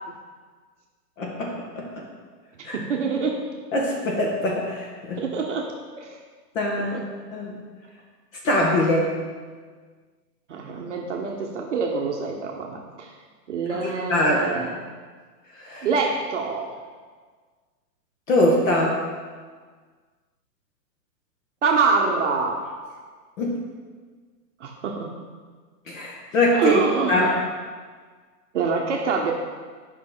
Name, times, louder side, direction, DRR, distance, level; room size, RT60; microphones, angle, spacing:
voice 1, 1.2-2.0 2.6-2.8 3.7-5.2 6.5-7.0 7.3-7.5 8.4-9.2 13.7-14.6 15.6-15.9 18.3-19.0 23.4-23.6 25.9-26.8 27.1-27.4, left 1 dB, 50° left, -2 dB, 1.5 m, -23 dB
voice 2, 2.5-3.4 5.2-5.7 6.0-6.2 6.9-7.0 10.5-13.1 13.5-14.8 15.8-16.7 21.6-22.6 24.6-25.2 26.5-27.4 28.5-29.3, right 4 dB, 45° right, 0 dB, 0.8 m, -25 dB
8.5 x 5.4 x 3.8 m, 1.5 s
hypercardioid pair, 165°, 49 cm